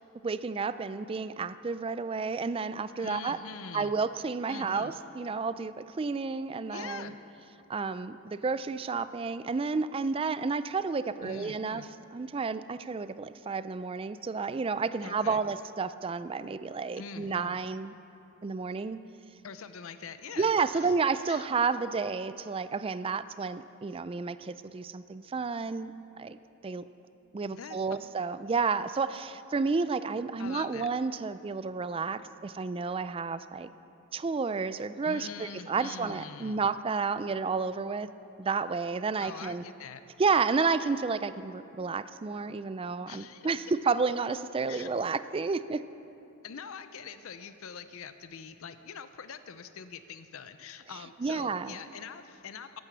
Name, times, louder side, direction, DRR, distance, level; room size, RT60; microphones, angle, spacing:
voice 1, 0.2-3.4 3.7-7.1 7.7-11.9 12.1-17.9 18.4-19.0 20.4-25.9 26.2-26.4 26.6-26.8 27.3-33.7 34.1-38.1 38.4-39.6 40.2-45.8 51.2-51.8, right 4 dB, 25° right, 14 dB, 0.3 m, -31 dB
voice 2, 3.0-3.9 4.5-4.9 6.7-7.2 11.2-11.9 15.0-15.4 17.0-17.6 19.4-20.9 21.3-21.5 27.5-28.1 30.4-30.9 35.0-36.6 39.2-40.0 43.1-43.5 44.7-44.9 46.4-52.8, left 6 dB, 65° left, 11 dB, 0.5 m, -44 dB
14.5 x 11.5 x 6.2 m, 2.8 s
head